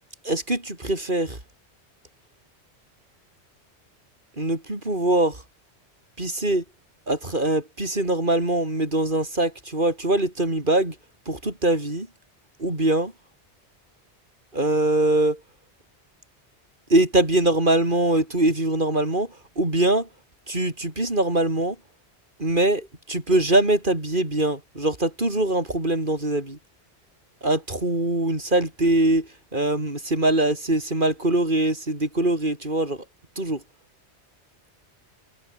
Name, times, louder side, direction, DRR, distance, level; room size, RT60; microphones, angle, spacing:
voice 1, 0.2-1.4 4.4-5.4 6.2-6.6 7.1-11.0 11.3-12.1 12.6-13.1 14.5-15.4 16.9-20.1 20.5-21.8 22.4-26.6 27.4-33.0 33.4-33.6, right 1 dB, 45° right, 5.9 m, -23 dB
omnidirectional pair, 1.2 m